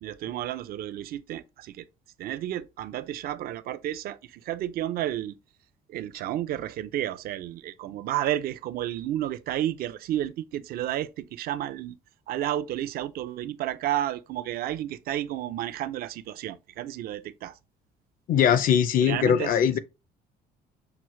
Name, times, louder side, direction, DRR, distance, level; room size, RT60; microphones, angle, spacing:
voice 1, 0.0-1.9 2.2-5.4 5.9-12.0 12.3-17.6 19.0-19.8, right 12 dB, 60° right, 0.4 m, -31 dB
voice 2, 18.3-19.8, left 8 dB, 55° left, 0.5 m, -21 dB
5.8 x 2.1 x 3.1 m
cardioid pair, 110°, 17 cm